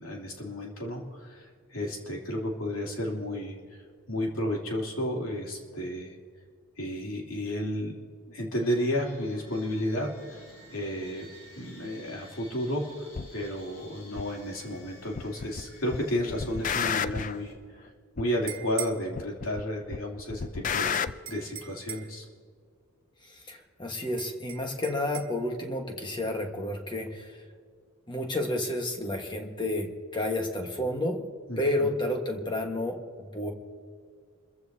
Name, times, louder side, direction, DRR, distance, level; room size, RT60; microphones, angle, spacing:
voice 1, 0.0-3.8 4.1-6.1 6.8-7.9 8.3-10.4 10.7-11.2 11.6-17.5 18.2-21.0 21.3-22.2 31.5-31.9, equal, 70° left, -1 dB, 3.0 m, -32 dB
sound 1, 8.5-17.5, left 1 dB, 90° left, 3.9 m, -52 dB
sound 2, 13.1-13.3 14.2-14.3 15.2-15.6 15.9-17.4 18.2-18.3 19.2-19.6 19.9-21.1, left 7 dB, 35° left, 0.4 m, -31 dB
sound 3, 18.3-19.0 20.9-22.2 24.2-25.3, right 11 dB, 60° right, 1.6 m, -40 dB
voice 2, 23.2-27.4 28.1-31.3 31.6-33.5, left 1 dB, 20° left, 3 dB, 1.4 m, -31 dB
28.5 x 15.0 x 2.8 m, 2.1 s
head